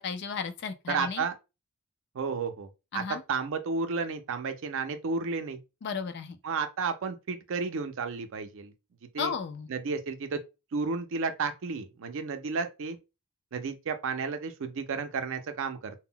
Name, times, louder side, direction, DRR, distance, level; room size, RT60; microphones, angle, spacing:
voice 1, 0.0-1.2 2.9-3.2 5.8-6.4 9.2-9.7, left 6 dB, 50° left, 0.4 m, -34 dB
voice 2, 0.9-1.3 2.1-2.7 2.9-5.6 6.4-8.7 9.1-9.3 9.7-10.4 10.7-13.0 13.5-15.9, right 4 dB, 60° right, 0.4 m, -32 dB
2.1 x 2.1 x 3.6 m
head